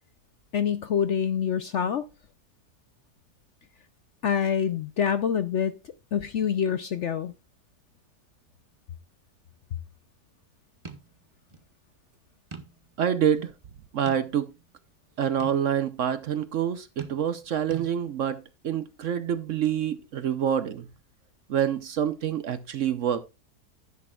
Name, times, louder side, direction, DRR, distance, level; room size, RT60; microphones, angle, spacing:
voice 1, 0.5-2.0 4.2-5.7 6.1-7.3, left 7 dB, 65° left, 0.7 m, -26 dB
sound 1, 10.8-11.1 11.5-11.6 12.5-12.9 13.3-13.4 14.1-14.6 15.4-15.6 17.0-17.4 17.7-17.9, right 5 dB, 25° right, 0.8 m, -42 dB
voice 2, 13.0-13.5 13.9-14.5 15.2-20.9 21.5-23.2, right 9 dB, 60° right, 0.9 m, -27 dB
11.0 x 10.5 x 2.3 m
omnidirectional pair, 1.7 m